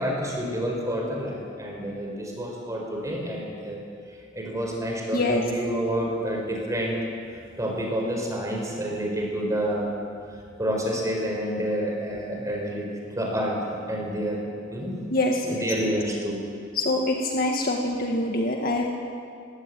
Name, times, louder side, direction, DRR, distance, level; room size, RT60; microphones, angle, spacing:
voice 1, 0.0-3.8 4.3-7.0 7.6-9.9 10.6-12.9 13.1-15.1 15.5-16.4, equal, 15° right, -1 dB, 5.2 m, -29 dB
voice 2, 5.1-5.4 15.1-15.6 16.7-18.9, left 2 dB, 50° left, 1 dB, 1.9 m, -25 dB
21.5 x 17.0 x 9.2 m, 2.3 s
head